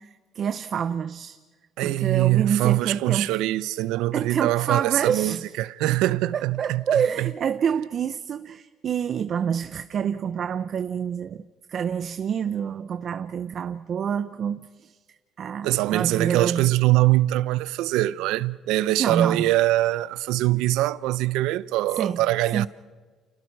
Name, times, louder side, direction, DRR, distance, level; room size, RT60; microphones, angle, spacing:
voice 1, 0.0-1.4 1.8-3.4 4.1-5.4 6.3-15.0 15.4-16.7 19.0-19.4 21.9-22.2 22.5-22.7, right 8 dB, 50° right, 0.7 m, -27 dB
voice 2, 1.8-7.3 15.6-22.7, right 16 dB, 85° right, 0.6 m, -23 dB
30.0 x 29.0 x 4.8 m
cardioid pair, 100°, 0 cm